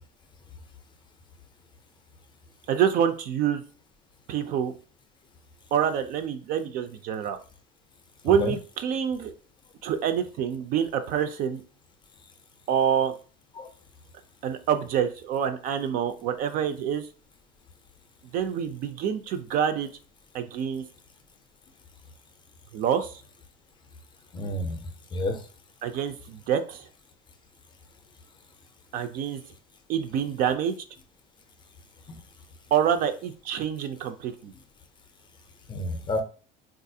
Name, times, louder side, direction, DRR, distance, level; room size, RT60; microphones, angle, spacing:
voice 1, 2.7-3.6 4.3-4.7 5.7-7.4 8.2-9.3 9.8-11.6 12.7-13.1 14.4-17.1 18.3-19.9 20.3-20.8 22.7-23.2 25.8-26.9 28.9-29.4 29.9-30.8 32.7-34.5, right 8 dB, 45° right, 9 dB, 0.4 m, -26 dB
voice 2, 24.3-25.4 32.1-32.2 35.7-36.2, left 2 dB, 25° left, 6 dB, 0.5 m, -30 dB
3.9 x 2.4 x 2.7 m, 0.39 s
cardioid pair, 135°, 20 cm